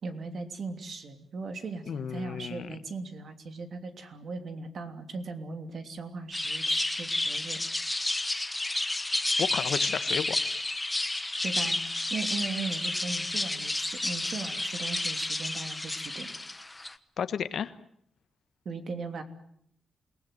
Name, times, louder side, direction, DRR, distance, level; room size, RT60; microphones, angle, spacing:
voice 1, 0.0-7.6 11.4-16.3 18.6-19.2, right 4 dB, 50° right, 7 dB, 3.0 m, -38 dB
voice 2, 1.9-2.7 9.4-10.4 17.2-17.7, left 8 dB, 60° left, 12 dB, 1.3 m, -32 dB
sound 1, 6.3-16.9, left 2 dB, 10° left, 1.1 m, -31 dB
28.5 x 19.5 x 9.2 m, 0.69 s
wide cardioid pair, 165°, 0 cm